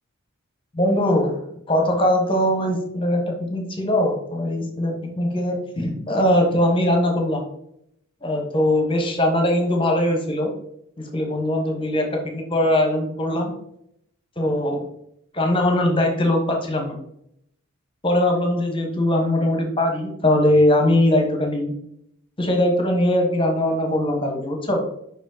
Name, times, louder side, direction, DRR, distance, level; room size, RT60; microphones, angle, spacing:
voice 1, 0.7-1.4 1.7-7.4 8.2-10.5 11.0-13.5 14.4-14.8 15.3-17.0 18.0-21.7 22.4-24.8, left 1 dB, 25° left, 2 dB, 1.0 m, -21 dB
5.2 x 5.1 x 3.8 m, 0.74 s
head